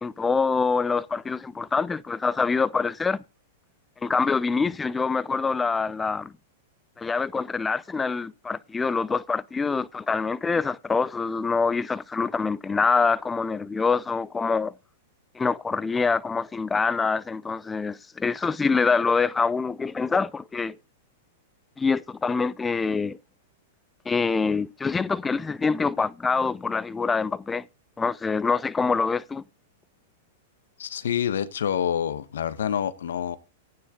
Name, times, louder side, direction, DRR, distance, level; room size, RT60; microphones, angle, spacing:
voice 1, 0.0-3.2 4.0-6.3 7.0-14.7 15.3-20.8 21.8-23.2 24.1-27.7 28.0-29.4, left 4 dB, 15° left, 0.5 m, -25 dB
voice 2, 30.8-33.4, left 9 dB, 80° left, 1.2 m, -27 dB
15.5 x 9.2 x 3.8 m
hypercardioid pair, 120°, 0 cm